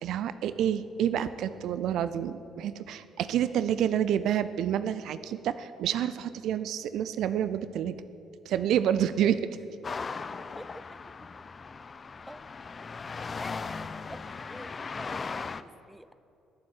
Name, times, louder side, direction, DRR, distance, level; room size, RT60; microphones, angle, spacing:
voice 1, 0.0-8.0 8.4-9.6, right 10 dB, 60° right, 14 dB, 0.5 m, -28 dB
sound 1, 9.8-15.6, left 4 dB, 35° left, 0.6 m, -38 dB
voice 2, 14.5-16.1, equal, 5° right, 13 dB, 0.7 m, -46 dB
20.0 x 7.7 x 8.8 m, 2.7 s
hypercardioid pair, 50°, 0 cm